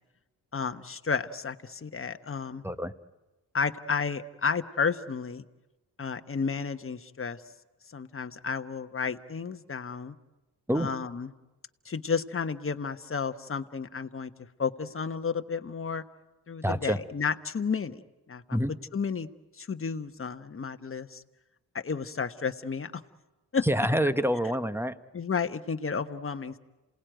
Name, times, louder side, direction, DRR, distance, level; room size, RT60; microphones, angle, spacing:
voice 1, 0.5-2.6 3.5-5.4 6.0-7.4 7.9-10.1 10.7-11.3 11.8-14.3 14.6-16.0 16.5-18.0 18.3-18.6 18.9-19.3 19.5-21.2 21.7-23.0 23.5-23.6 25.1-26.6, left 5 dB, 30° left, 9 dB, 1.2 m, -32 dB
voice 2, 16.6-17.0 18.5-18.7 23.6-25.0, equal, 5° right, 12 dB, 1.1 m, -27 dB
28.0 x 18.5 x 9.1 m, 1.1 s
cardioid pair, 60°, 41 cm